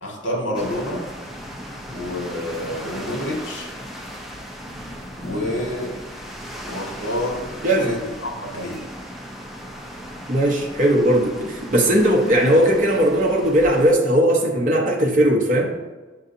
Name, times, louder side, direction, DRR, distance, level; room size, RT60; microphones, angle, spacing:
voice 1, 0.0-1.1 1.9-3.7 5.2-5.9 6.6-7.4 7.8-8.8, left 1 dB, 75° left, -1 dB, 1.4 m, -28 dB
sound 1, 0.5-13.9, equal, ahead, 0.4 m, -37 dB
voice 2, 7.6-8.0 10.3-15.7, right 1 dB, 45° right, -2 dB, 0.7 m, -18 dB
7.7 x 2.7 x 2.5 m, 1.2 s
head